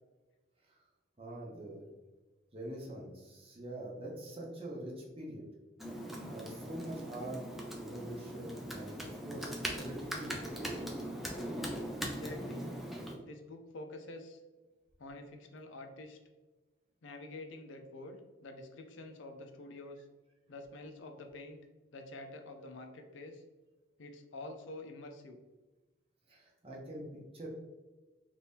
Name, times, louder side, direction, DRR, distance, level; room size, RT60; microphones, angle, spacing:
voice 1, 1.2-1.9 2.5-5.5 6.3-7.4 7.8-10.7 26.3-27.1 27.3-27.5, right 1 dB, 30° right, -2 dB, 0.7 m, -44 dB
Computer keyboard, 5.8-13.1, equal, ahead, 0.3 m, -40 dB
voice 2, 12.0-12.7 13.2-14.4 15.0-16.2 17.0-20.0 20.5-21.6 21.9-23.4 24.0-25.4, left 2 dB, 80° left, 4 dB, 0.5 m, -47 dB
2.8 x 2.6 x 3.4 m, 1.2 s
head